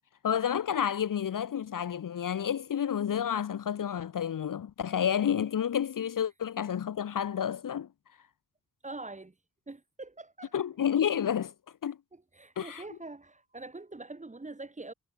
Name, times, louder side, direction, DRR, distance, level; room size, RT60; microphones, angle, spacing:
voice 1, 0.2-7.9 10.5-11.5 11.8-12.0 12.6-12.8, left 9 dB, 55° left, 1.0 m, -30 dB
voice 2, 8.8-9.3 9.7-10.5 12.1-14.9, right 2 dB, 20° right, 3.6 m, -44 dB
wide cardioid pair, 165°, 37 cm